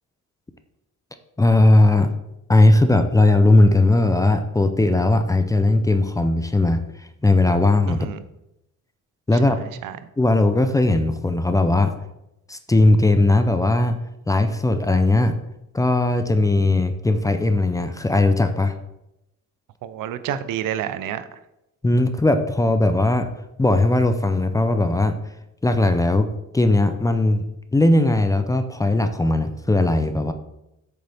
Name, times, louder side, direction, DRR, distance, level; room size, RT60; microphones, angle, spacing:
voice 1, 1.4-2.1 2.5-6.8 7.2-8.1 9.3-9.6 10.2-11.9 12.5-14.0 14.3-15.3 15.7-18.7 21.8-23.3 23.6-25.1 25.6-26.3 26.5-27.4 27.7-30.3, left 2 dB, 10° left, 8 dB, 0.4 m, -18 dB
voice 2, 7.9-8.2 9.3-10.0 19.8-21.3, right 10 dB, 85° right, 13 dB, 0.7 m, -29 dB
8.2 x 6.7 x 3.4 m, 0.88 s
cardioid pair, 145°, 32 cm